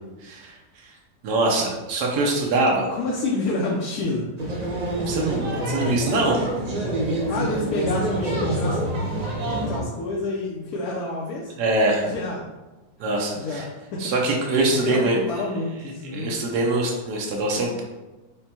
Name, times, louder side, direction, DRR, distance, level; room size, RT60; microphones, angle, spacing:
voice 1, 0.2-0.5 1.2-2.9 5.1-6.5 7.0-7.2 11.6-12.1 13.0-13.6 14.0-15.2 16.1-17.8, right 2 dB, 75° right, -1 dB, 1.3 m, -23 dB
voice 2, 2.9-4.3 7.3-8.8 9.7-11.5 12.0-12.4 13.3-14.1 14.8-16.3, left 2 dB, 70° left, -3 dB, 1.1 m, -28 dB
sound 1, 4.4-9.8, right 1 dB, 50° right, 0.4 m, -26 dB
5.4 x 2.2 x 4.3 m, 1.1 s
omnidirectional pair, 1.8 m